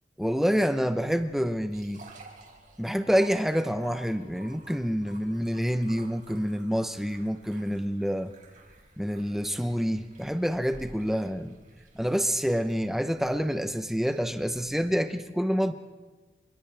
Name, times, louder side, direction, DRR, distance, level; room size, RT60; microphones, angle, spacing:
voice 1, 0.2-2.0 2.8-8.3 9.0-11.6 11.9-15.7, equal, ahead, 8 dB, 0.9 m, -27 dB
sound 1, 0.7-14.9, right 2 dB, 45° right, 4.3 m, -53 dB
29.0 x 26.5 x 3.5 m, 1.3 s
head